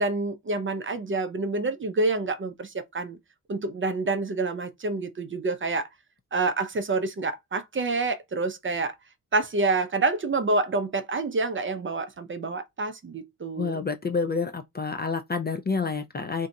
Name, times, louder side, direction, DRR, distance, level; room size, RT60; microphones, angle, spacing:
voice 1, 0.0-3.2 3.5-5.9 6.3-8.9 9.3-13.8, right 3 dB, 35° right, 0.5 m, -27 dB
voice 2, 13.6-16.5, left 4 dB, 30° left, 0.3 m, -28 dB
2.6 x 2.3 x 3.9 m
wide cardioid pair, 125°, 37 cm